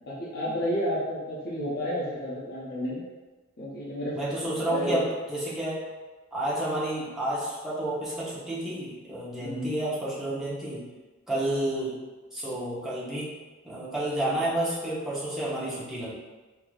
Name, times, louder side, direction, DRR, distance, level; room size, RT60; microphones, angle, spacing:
voice 1, 0.0-3.0 3.6-5.0 9.4-9.8, equal, 45° left, -7 dB, 0.8 m, -31 dB
voice 2, 4.1-5.8 6.3-10.9 11.3-12.0 12.3-13.3 13.6-16.1, right 1 dB, ahead, -9 dB, 0.9 m, -30 dB
4.6 x 2.7 x 2.4 m, 1.3 s
head